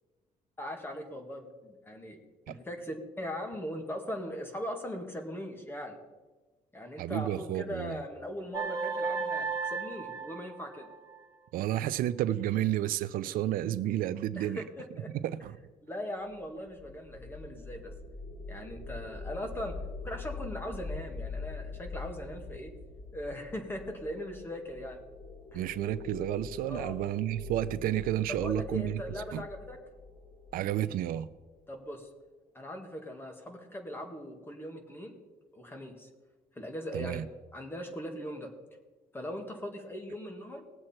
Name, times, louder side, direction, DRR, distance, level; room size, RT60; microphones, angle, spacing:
voice 1, 0.6-2.2 2.5-6.0 6.7-10.9 14.4-15.1 15.8-17.9 18.5-22.7 23.1-25.0 25.5-25.7 26.7-27.0 28.4-29.8 31.7-32.1 32.5-35.1 35.5-36.1 36.6-37.2 37.5-38.5 39.1-40.6, equal, 15° left, 4 dB, 1.9 m, -40 dB
voice 2, 7.0-7.9 11.5-14.6 15.2-15.5 25.5-29.0 29.3-29.4 30.5-31.3 36.9-37.2, right 12 dB, 75° right, 14 dB, 0.5 m, -31 dB
sound 1, 8.5-11.2, right 4 dB, 25° right, 1.9 m, -34 dB
sound 2, 16.3-31.5, left 4 dB, 40° left, 3.9 m, -44 dB
19.5 x 7.7 x 4.4 m, 1.2 s
cardioid pair, 145°, 15 cm